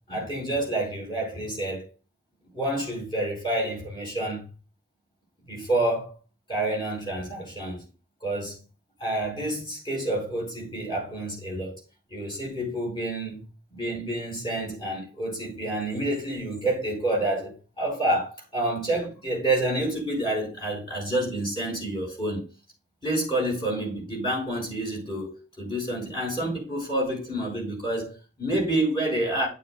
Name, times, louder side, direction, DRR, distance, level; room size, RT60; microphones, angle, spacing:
voice 1, 0.1-1.9 2.5-4.5 5.5-6.1 6.5-7.9 8.2-8.6 9.0-11.8 12.1-22.4 23.0-29.5, right 1 dB, 25° left, 5.0 m, -28 dB
9.3 x 9.2 x 2.2 m
head